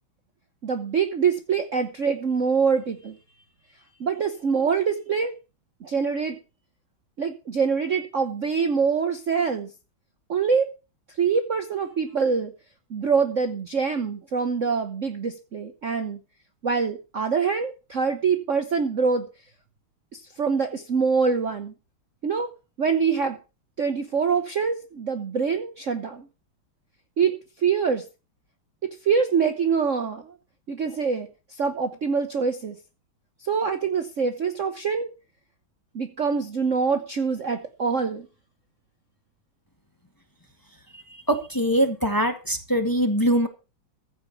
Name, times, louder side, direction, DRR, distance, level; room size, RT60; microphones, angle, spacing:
voice 1, 0.6-3.1 4.0-5.3 5.8-6.4 7.2-9.7 10.3-10.7 11.2-12.5 12.9-16.2 16.6-19.2 20.4-21.7 22.2-22.5 22.8-23.4 23.8-26.3 27.2-28.0 28.8-30.3 30.7-31.3 31.6-32.7 33.4-35.1 35.9-38.3, right 5 dB, 45° right, 7 dB, 1.1 m, -24 dB
voice 2, 41.3-43.5, equal, 10° left, 5 dB, 1.6 m, -22 dB
15.0 x 5.1 x 8.4 m, 0.32 s
omnidirectional pair, 2.3 m